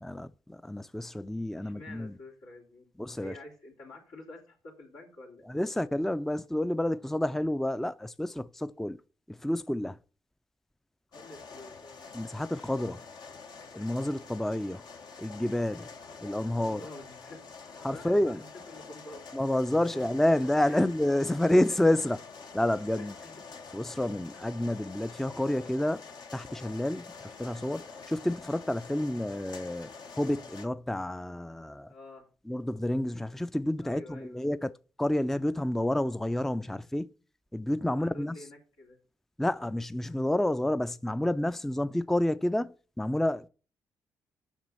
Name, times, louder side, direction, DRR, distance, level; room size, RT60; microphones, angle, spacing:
voice 1, 0.0-2.2 3.0-3.3 5.5-9.0 9.3-10.0 12.1-13.0 13.7-14.8 15.2-15.9 16.2-16.8 17.8-18.4 19.3-22.2 22.5-23.2 23.7-26.1 26.3-29.9 30.2-31.9 32.5-34.7 35.0-37.1 37.5-38.4 39.4-43.5, left 1 dB, 5° left, 0.4 m, -29 dB
voice 2, 1.5-2.9 3.1-5.5 11.1-12.1 15.7-15.9 16.6-19.3 19.8-20.4 20.6-20.9 21.3-22.1 22.9-23.4 31.9-32.3 33.8-34.4 37.9-39.0, left 2 dB, 85° left, 3.2 m, -49 dB
sound 1, 11.1-30.7, left 5 dB, 65° left, 1.1 m, -47 dB
7.4 x 6.0 x 5.5 m
supercardioid pair, 60°, 8 cm